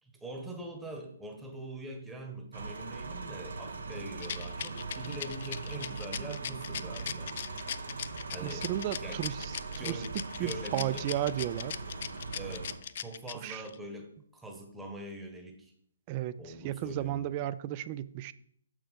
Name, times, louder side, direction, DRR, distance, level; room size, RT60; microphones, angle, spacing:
voice 1, 0.0-7.3 8.3-8.7 9.0-9.2 9.8-10.1 10.4-11.0 12.3-12.8 13.0-15.7 16.4-17.3, right 1 dB, 5° right, 2 dB, 1.2 m, -43 dB
sound 1, 2.5-12.8, right 3 dB, 65° right, 1.2 m, -40 dB
Rattle, 4.2-13.8, left 9 dB, 45° left, 0.4 m, -39 dB
voice 2, 8.4-9.5 9.8-10.0 10.4-11.7 13.4-13.6 16.1-18.3, right 12 dB, 30° right, 15 dB, 0.4 m, -34 dB
6.7 x 6.1 x 5.1 m, 0.65 s
figure-of-eight pair, 130°, 0 cm